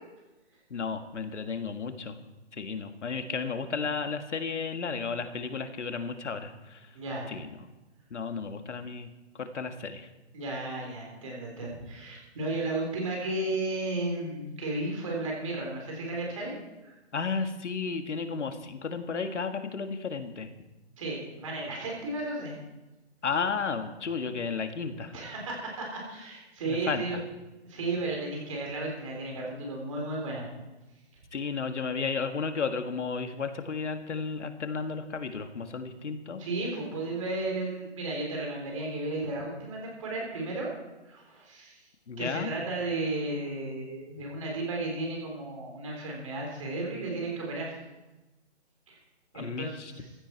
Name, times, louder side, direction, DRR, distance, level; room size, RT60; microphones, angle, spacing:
voice 1, 0.7-2.1 2.5-6.9 7.3-7.6 8.1-9.1 9.4-10.1 17.1-20.5 23.2-25.2 26.7-27.2 31.3-36.4 42.1-42.6 49.3-49.9, left 5 dB, 85° left, 7 dB, 1.8 m, -33 dB
voice 2, 6.9-7.3 10.3-16.5 16.8-17.0 21.0-22.5 25.1-27.2 27.6-30.5 36.4-40.7 41.1-41.8 42.2-47.8 48.9-49.0 49.3-49.7 50.0-50.1, right 2 dB, 30° right, -1 dB, 4.0 m, -34 dB
15.5 x 12.5 x 4.6 m, 1.1 s
hypercardioid pair, 180°, 34 cm